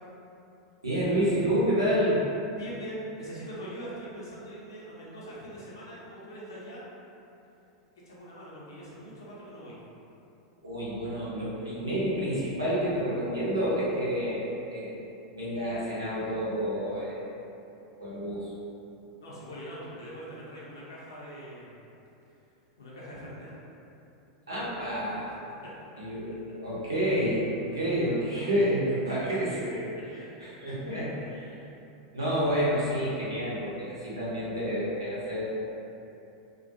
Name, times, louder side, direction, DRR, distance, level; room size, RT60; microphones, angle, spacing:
voice 1, 0.8-2.2 10.6-14.9 15.3-17.4 18.0-18.5 24.5-25.4 26.0-31.5 32.1-35.4, equal, 80° right, -9 dB, 0.8 m, -29 dB
voice 2, 2.5-6.8 8.0-9.8 19.2-21.8 22.8-23.5, equal, 70° left, -7 dB, 0.7 m, -42 dB
2.3 x 2.3 x 2.7 m, 2.8 s
figure-of-eight pair, 85°, 2 cm